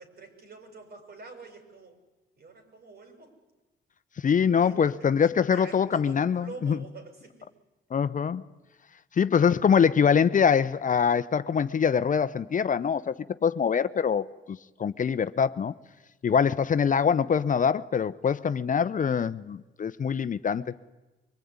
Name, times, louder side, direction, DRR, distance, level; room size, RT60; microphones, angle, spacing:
voice 1, 0.0-2.0 2.4-3.3 4.6-7.5, right 4 dB, 55° right, 6.4 m, -46 dB
voice 2, 4.2-6.8 7.9-8.4 9.1-15.7 16.2-20.7, left 7 dB, 40° left, 0.8 m, -24 dB
24.0 x 21.5 x 9.6 m
cardioid pair, 90°, 20 cm